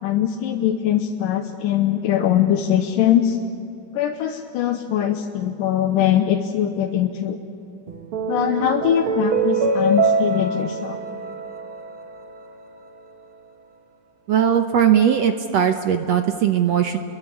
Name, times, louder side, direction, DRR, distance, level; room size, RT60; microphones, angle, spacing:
voice 1, 0.0-3.4 3.9-7.4 8.3-11.0, left 10 dB, 75° left, 2 dB, 2.6 m, -21 dB
sound 1, 7.9-12.4, right 3 dB, 55° right, 1.6 m, -24 dB
voice 2, 14.3-17.0, right 9 dB, 70° right, 6 dB, 1.6 m, -19 dB
29.5 x 22.5 x 8.5 m, 2.7 s
omnidirectional pair, 4.1 m